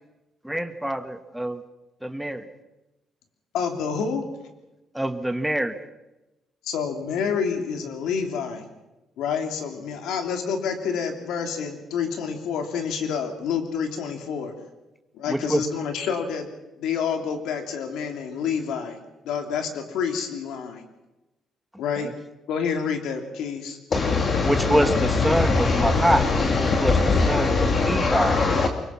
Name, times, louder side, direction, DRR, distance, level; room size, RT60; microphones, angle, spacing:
voice 1, 0.4-1.6 2.0-2.5 4.9-5.8 15.3-15.6 24.5-26.2 26.6-27.0 27.3-28.4, right 1 dB, 5° right, 8 dB, 1.9 m, -25 dB
voice 2, 3.5-4.2 6.6-8.7 9.2-14.7 15.1-16.5 16.8-19.0 19.2-20.8 21.8-22.1 22.5-23.8, left 6 dB, 85° left, 5 dB, 3.2 m, -28 dB
voice 3, 23.9-28.7, left 4 dB, 45° left, 5 dB, 2.0 m, -21 dB
24.0 x 22.5 x 5.9 m, 0.99 s
cardioid pair, 90°, 0 cm